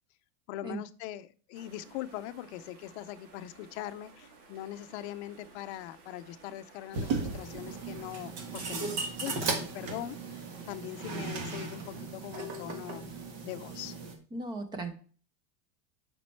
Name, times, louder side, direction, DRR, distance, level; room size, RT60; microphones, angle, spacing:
voice 1, 0.5-13.0 13.4-13.9, left 13 dB, 50° left, 13 dB, 0.6 m, -42 dB
sound 1, 1.5-12.0, right 4 dB, 80° right, 2.5 m, -56 dB
sound 2, 6.9-14.2, right 4 dB, 50° right, 1.7 m, -36 dB
voice 2, 14.3-14.9, right 2 dB, 10° right, 8 dB, 0.5 m, -37 dB
7.2 x 5.3 x 4.5 m, 0.41 s
supercardioid pair, 170°, 45 cm